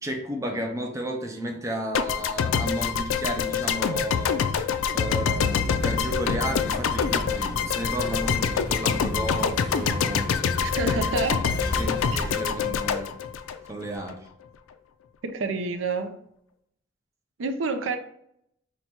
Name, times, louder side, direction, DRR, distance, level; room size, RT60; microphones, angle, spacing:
voice 1, 0.0-10.3 11.6-13.1 13.7-14.3, right 1 dB, 15° right, 0.4 m, -33 dB
sound 1, 1.9-14.1, left 7 dB, 90° left, 0.3 m, -26 dB
sound 2, 5.7-12.3, left 1 dB, 10° left, 1.3 m, -33 dB
voice 2, 10.6-11.5 15.2-16.2 17.4-18.0, right 4 dB, 75° right, 0.4 m, -28 dB
4.3 x 2.2 x 4.2 m
head